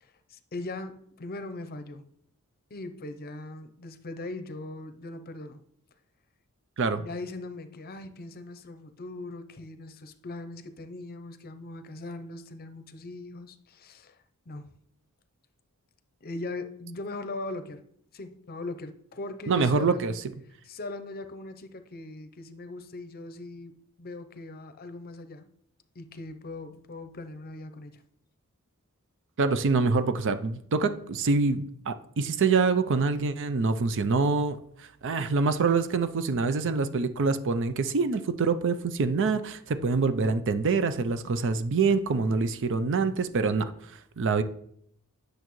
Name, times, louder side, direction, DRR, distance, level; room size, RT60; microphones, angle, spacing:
voice 1, 0.0-2.0 2.7-5.6 6.9-14.2 14.5-14.7 16.2-17.8 18.1-20.0 20.6-23.7 24.0-25.5 25.9-28.0, left 2 dB, 45° left, 0.6 m, -40 dB
voice 2, 19.5-20.1 29.4-34.6 35.0-43.7 44.2-44.4, right 4 dB, 55° right, 0.5 m, -25 dB
10.5 x 6.4 x 3.1 m
head